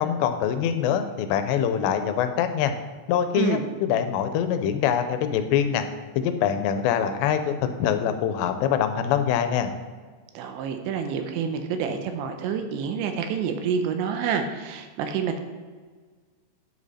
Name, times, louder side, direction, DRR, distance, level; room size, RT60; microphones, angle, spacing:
voice 1, 0.0-2.7 3.1-5.8 6.1-9.7, left 8 dB, 85° left, 9 dB, 2.8 m, -24 dB
voice 2, 10.3-15.4, right 6 dB, 90° right, 7 dB, 3.0 m, -28 dB
9.4 x 5.1 x 4.2 m, 1.5 s
omnidirectional pair, 5.0 m